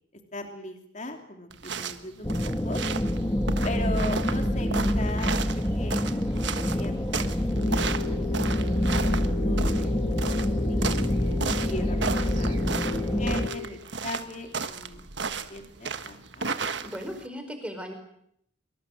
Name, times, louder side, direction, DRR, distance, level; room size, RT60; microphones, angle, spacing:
voice 1, 0.3-2.8 3.6-7.7 8.3-9.9 10.7-11.4 11.7-16.6, left 1 dB, 35° left, 4 dB, 3.1 m, -39 dB
sound 1, 1.5-17.3, right 4 dB, 60° right, 1.5 m, -34 dB
sound 2, 2.2-13.5, equal, 15° left, 1.8 m, -26 dB
sound 3, 7.6-13.7, left 13 dB, 65° left, 2.4 m, -38 dB
voice 2, 16.8-17.9, equal, 5° right, 5 dB, 4.9 m, -37 dB
25.0 x 24.0 x 7.9 m, 0.73 s
head